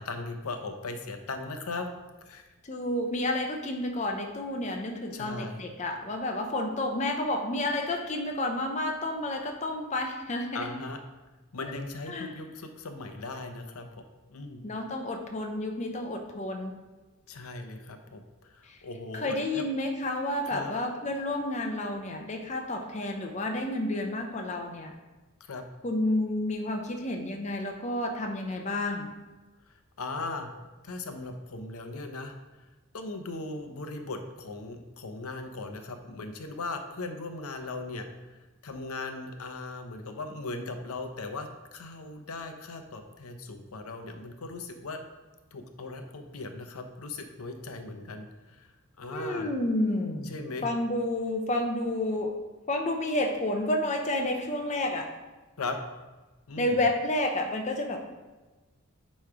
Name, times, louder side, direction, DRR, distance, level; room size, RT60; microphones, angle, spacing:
voice 1, 0.0-1.9 2.2-2.5 5.1-5.6 10.5-11.0 11.5-13.9 14.3-14.6 17.3-19.6 20.5-20.7 25.4-25.6 30.0-30.5 30.8-32.3 32.9-38.1 38.6-45.0 45.5-48.7 49.0-49.5 50.3-50.7 55.6-55.8 56.5-56.8, left 3 dB, 85° left, 6 dB, 0.7 m, -38 dB
voice 2, 2.6-10.7 12.1-12.4 14.6-16.7 18.7-18.8 19.1-24.9 25.8-29.1 49.1-52.3 52.7-55.1 56.6-58.0, left 1 dB, 30° left, 3 dB, 0.6 m, -30 dB
8.4 x 3.2 x 4.7 m, 1.2 s
head